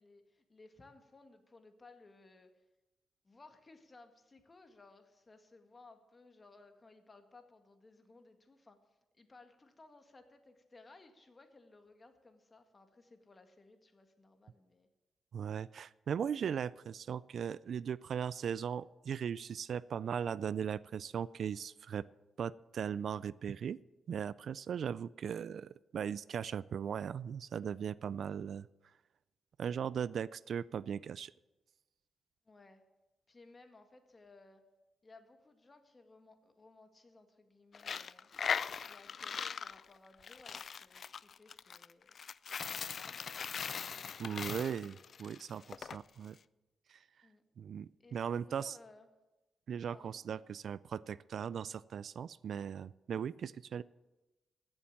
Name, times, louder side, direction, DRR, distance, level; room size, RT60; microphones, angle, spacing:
voice 1, 0.0-2.6 3.2-14.9 32.5-32.9 33.3-34.7 35.0-38.3 38.9-42.1 42.6-44.6 47.2-47.4 48.0-49.1 49.9-50.5, left 3 dB, 35° left, 7 dB, 1.9 m, -60 dB
voice 2, 15.3-22.0 22.4-23.8 24.1-28.7 29.6-31.3 44.2-46.4 46.9-47.0 47.6-48.8 49.7-53.8, right 8 dB, 70° right, 19 dB, 0.3 m, -38 dB
Coin (dropping), 37.7-46.0, left 6 dB, 60° left, 0.4 m, -40 dB
16.0 x 7.1 x 7.3 m, 1.1 s
cardioid pair, 75°, 0 cm